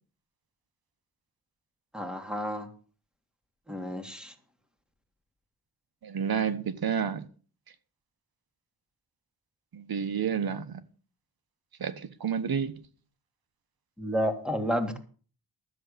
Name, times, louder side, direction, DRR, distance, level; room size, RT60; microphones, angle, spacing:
voice 1, 1.9-2.7 3.7-4.3 14.0-15.0, equal, ahead, 2.7 m, -31 dB
voice 2, 6.0-7.3 9.7-10.8 11.8-12.7, right 7 dB, 70° right, 1.3 m, -30 dB
13.5 x 7.6 x 6.9 m
cardioid pair, 70°, 38 cm